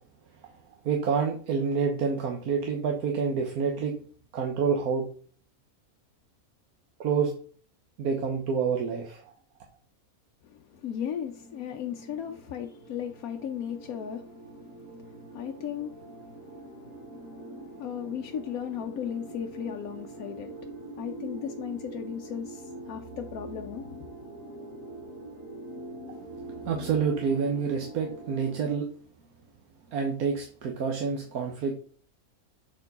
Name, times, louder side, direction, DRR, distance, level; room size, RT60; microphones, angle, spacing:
voice 1, 0.8-3.9 4.3-5.1 7.0-7.3 8.0-9.2 26.7-28.9 29.9-31.7, right 6 dB, 90° right, 1.4 m, -28 dB
voice 2, 10.4-24.1, left 9 dB, 85° left, 1.1 m, -37 dB
sound 1, 10.7-28.8, right 2 dB, 60° right, 2.8 m, -44 dB
6.8 x 4.4 x 4.0 m
omnidirectional pair, 1.5 m